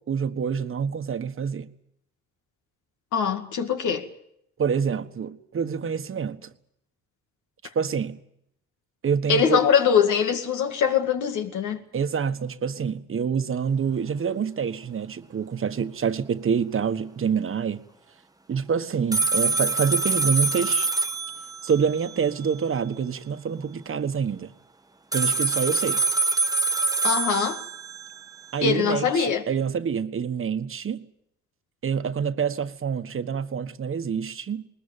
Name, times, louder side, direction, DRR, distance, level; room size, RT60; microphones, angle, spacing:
voice 1, 0.0-1.7 4.6-6.5 7.7-8.2 9.0-9.6 11.9-17.8 18.5-20.9 21.6-24.5 25.1-26.0 28.5-31.1 31.8-34.7, right 6 dB, 45° right, 1.4 m, -27 dB
voice 2, 3.1-4.1 9.3-11.8 27.0-27.6 28.6-29.4, left 7 dB, 75° left, 2.2 m, -22 dB
sound 1, 19.1-22.5 25.1-28.5, right 3 dB, 10° right, 1.0 m, -25 dB
20.5 x 20.0 x 8.9 m
cardioid pair, 90°, 30 cm